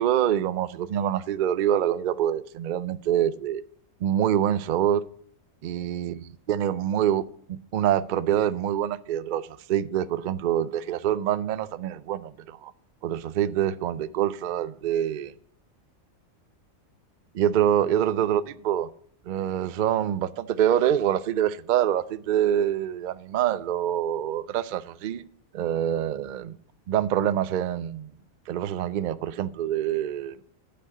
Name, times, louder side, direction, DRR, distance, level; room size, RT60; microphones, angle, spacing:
voice 1, 0.0-3.6 4.0-5.0 5.6-7.2 7.5-12.7 13.0-15.3 17.3-18.9 19.3-25.2 25.5-26.6 26.9-28.1 28.5-30.4, right 10 dB, 85° right, 0.4 m, -25 dB
8.6 x 5.2 x 7.8 m
omnidirectional pair, 1.4 m